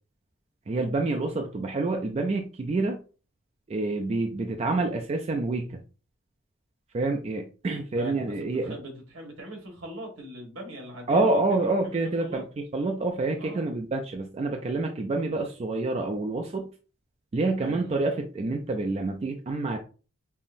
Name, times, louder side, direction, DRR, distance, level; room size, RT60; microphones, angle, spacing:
voice 1, 0.7-3.0 3.7-5.8 6.9-8.7 11.1-16.7 17.3-19.8, right 2 dB, 30° right, 3 dB, 0.3 m, -27 dB
voice 2, 8.0-8.3 8.6-11.4 11.8-12.4 13.4-13.7 17.6-18.0, right 1 dB, 75° right, 1 dB, 1.3 m, -41 dB
5.4 x 2.0 x 2.5 m, 0.36 s
head